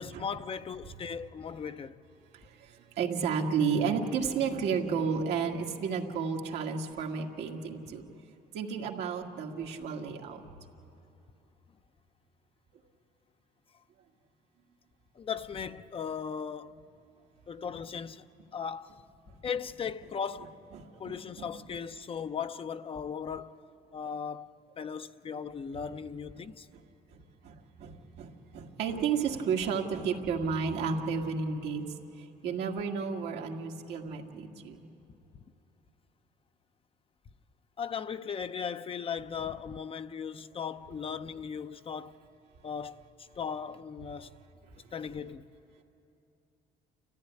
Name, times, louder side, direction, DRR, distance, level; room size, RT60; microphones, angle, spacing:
voice 1, 0.0-2.0 15.2-16.7 17.5-18.3 18.5-19.0 19.4-20.5 21.0-23.6 23.9-26.7 37.8-42.2 42.6-43.1 43.4-44.4 44.9-45.5, left 6 dB, 35° left, 0.6 m, -37 dB
voice 2, 2.3-8.0 8.5-10.4 20.7-21.2 27.1-31.9 32.2-34.9, right 6 dB, 85° right, 2.0 m, -32 dB
30.0 x 14.5 x 9.9 m
cardioid pair, 110°, 17 cm